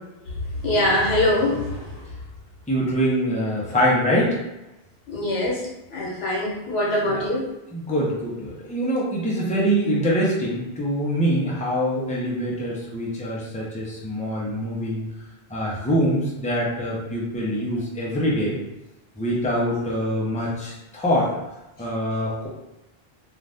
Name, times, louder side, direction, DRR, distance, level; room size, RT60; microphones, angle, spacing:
voice 1, 0.5-2.0 5.1-5.6 5.9-7.5, left 1 dB, 85° left, -4 dB, 1.2 m, -23 dB
voice 2, 2.7-4.4 7.0-7.2 7.7-15.0 15.5-18.6 19.2-21.3 21.8-22.5, equal, 10° left, -5 dB, 0.6 m, -24 dB
2.6 x 2.4 x 3.4 m, 0.96 s
omnidirectional pair, 1.0 m